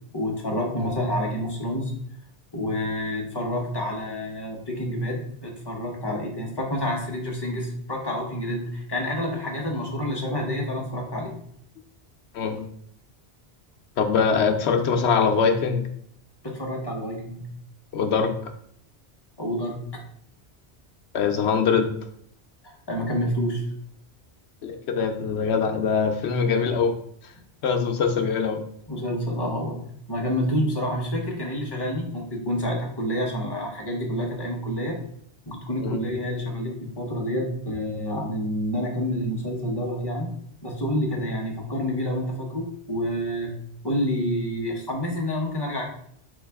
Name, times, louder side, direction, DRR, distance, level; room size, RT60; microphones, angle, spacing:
voice 1, 0.1-1.9 2.5-11.3 16.4-17.4 19.4-19.8 22.6-23.6 28.9-29.8 30.1-35.0 35.5-40.3 40.6-43.5 43.8-45.9, equal, 25° left, -1 dB, 0.9 m, -28 dB
voice 2, 12.3-12.6 14.0-15.9 17.9-18.5 21.1-21.9 24.6-27.0 27.2-27.3 27.6-28.6 35.8-36.0, left 5 dB, 80° left, 6 dB, 0.9 m, -23 dB
3.9 x 3.8 x 3.4 m, 0.67 s
omnidirectional pair, 1.1 m